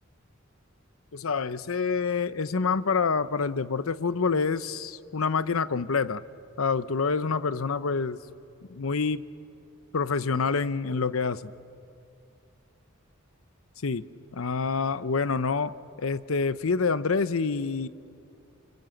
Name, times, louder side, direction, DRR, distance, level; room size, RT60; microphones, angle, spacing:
voice 1, 1.1-6.2 6.6-8.2 8.7-9.3 9.9-11.5 13.8-14.0 14.3-17.9, left 4 dB, 85° left, 15 dB, 0.8 m, -27 dB
28.5 x 26.0 x 7.9 m, 2.5 s
head